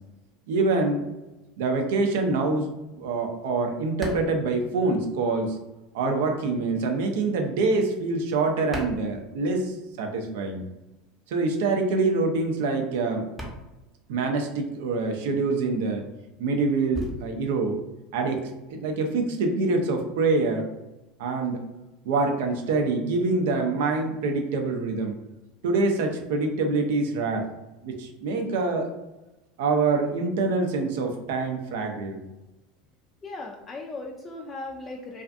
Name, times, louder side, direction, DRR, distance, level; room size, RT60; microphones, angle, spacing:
voice 1, 0.5-1.0 1.6-5.6 5.9-10.6 11.3-13.3 14.1-16.0 16.4-17.8 18.1-20.7 21.2-21.6 22.1-25.2 25.6-27.5 27.8-29.0 29.6-32.2, right 3 dB, 75° right, 3 dB, 0.4 m, -25 dB
sound 1, 4.0-5.5 5.8-9.9 10.2-18.9, equal, 5° right, 0.6 m, -41 dB
voice 2, 33.2-35.2, left 2 dB, 25° left, 0 dB, 0.3 m, -37 dB
2.4 x 2.4 x 2.4 m, 1.0 s
hypercardioid pair, 90°, 0 cm